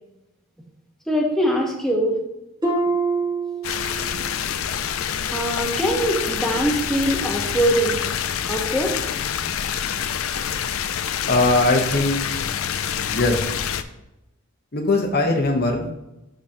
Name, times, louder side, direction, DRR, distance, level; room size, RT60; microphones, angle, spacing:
voice 1, 1.1-2.2 5.3-8.0 8.5-8.9, right 1 dB, ahead, -1 dB, 1.1 m, -22 dB
Harp, 2.6-4.4 4.7-5.1 5.7-5.8, right 3 dB, 20° right, 1.4 m, -26 dB
sound 1, 3.6-13.8, left 8 dB, 85° left, 0.4 m, -26 dB
voice 2, 11.3-12.2 13.1-13.4 14.7-15.9, left 2 dB, 45° left, 2 dB, 1.0 m, -20 dB
11.5 x 4.0 x 2.9 m, 0.91 s
head